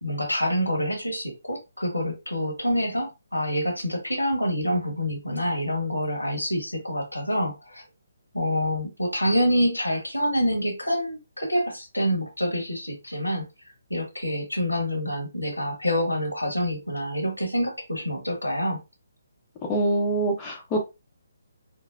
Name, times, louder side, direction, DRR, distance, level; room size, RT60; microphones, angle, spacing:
voice 1, 0.0-7.8 8.3-13.5 13.9-18.8, equal, 90° left, 1.2 m, -27 dB
voice 2, 19.7-20.8, right 1 dB, 20° left, 0.7 m, -24 dB
3.9 x 2.1 x 2.4 m
figure-of-eight pair, 140°, 0 cm